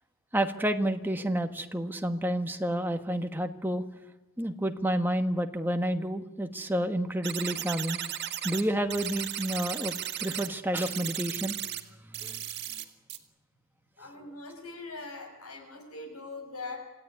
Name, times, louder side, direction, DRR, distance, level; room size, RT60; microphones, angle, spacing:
voice 1, 0.3-3.8 4.4-8.0 8.4-9.9 10.2-11.6 12.2-12.4, right 1 dB, 10° right, 6 dB, 1.4 m, -30 dB
sound 1, 7.2-8.6 8.9-10.5 10.8-11.8 12.1-12.8 13.1-13.2, right 11 dB, 50° right, 1.8 m, -35 dB
voice 2, 14.0-16.8, left 3 dB, 80° left, 4 dB, 7.0 m, -41 dB
27.5 x 17.0 x 9.6 m, 1.1 s
head